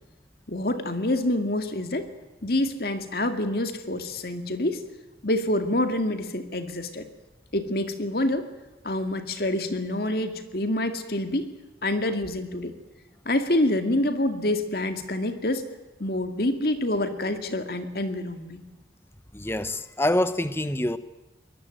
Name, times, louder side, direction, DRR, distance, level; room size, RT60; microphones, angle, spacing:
voice 1, 0.5-2.1 2.4-4.8 5.2-7.0 7.5-8.5 8.8-11.5 11.8-12.7 13.3-15.6 16.0-18.6, left 1 dB, 55° left, 2.2 m, -27 dB
voice 2, 19.3-21.0, left 1 dB, 15° left, 1.0 m, -26 dB
23.5 x 19.5 x 9.2 m
head